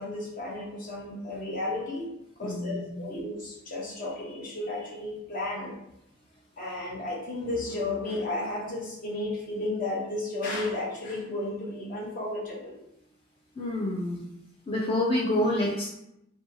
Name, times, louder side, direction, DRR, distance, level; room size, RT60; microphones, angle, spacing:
voice 1, 0.0-2.1 2.4-5.8 6.6-12.8, left 2 dB, 45° left, -3 dB, 0.8 m, -33 dB
voice 2, 2.4-2.8 13.6-14.2 14.7-15.9, left 1 dB, 30° left, -4 dB, 0.3 m, -27 dB
2.6 x 2.2 x 2.7 m, 0.82 s
head